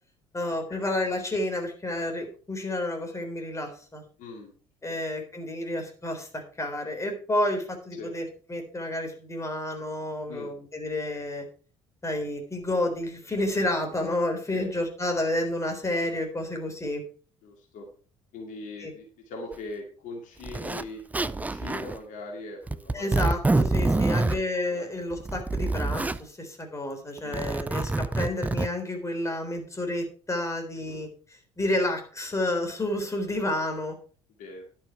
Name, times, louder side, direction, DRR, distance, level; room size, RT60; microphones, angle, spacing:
voice 1, 0.3-4.0 4.8-11.4 12.0-17.0 18.8-18.9 22.9-31.1 31.6-34.0, left 1 dB, 20° left, 4 dB, 3.8 m, -30 dB
voice 2, 4.2-4.5 4.9-5.1 7.9-8.1 10.3-10.5 14.5-14.7 17.4-17.9 18.3-23.1 23.9-25.1 27.2-27.4 28.3-28.4 30.9-31.0 34.4-34.6, left 2 dB, 55° left, 1 dB, 2.4 m, -41 dB
Zipper (clothing), 19.5-19.6 20.4-20.8 21.1-22.0 22.7-24.4 25.1-26.2 27.2-28.7, right 2 dB, 10° right, 0.5 m, -26 dB
11.5 x 8.5 x 4.5 m, 0.40 s
figure-of-eight pair, 55°, 16 cm